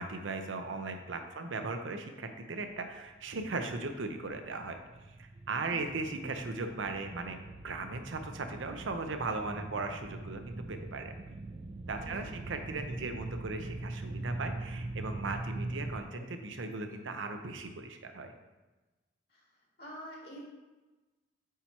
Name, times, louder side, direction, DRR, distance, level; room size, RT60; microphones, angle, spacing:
voice 1, 0.0-4.8 5.2-7.4 7.6-11.1 11.9-18.3, right 3 dB, 90° right, 6 dB, 0.7 m, -38 dB
sound 1, 2.6-16.0, right 2 dB, 35° right, 0.3 m, -42 dB
sound 2, 11.5-13.0 13.4-14.9 15.2-17.7, left 1 dB, 35° left, 0.8 m, -57 dB
voice 2, 19.8-20.4, equal, 55° left, -4 dB, 2.0 m, -48 dB
8.2 x 2.9 x 4.6 m, 1.2 s
head